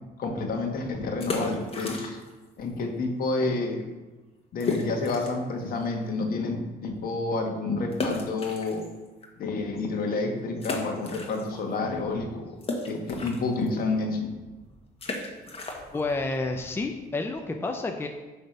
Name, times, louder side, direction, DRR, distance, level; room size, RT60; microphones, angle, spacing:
voice 1, 0.2-2.2 2.6-3.8 4.5-8.8 9.4-12.6 12.9-14.3, left 3 dB, 60° left, 3 dB, 1.5 m, -29 dB
sound 1, 1.1-2.4 2.7-2.8 3.4-3.5 3.8-3.9 4.6-5.5 6.0-6.1 7.9-9.3 9.8-9.9 10.6-11.8 12.0-17.5, left 3 dB, 35° left, 1.5 m, -35 dB
voice 2, 15.9-18.1, left 3 dB, 15° left, 4 dB, 0.6 m, -30 dB
10.0 x 3.4 x 6.5 m, 1.2 s
cardioid pair, 120°, 17 cm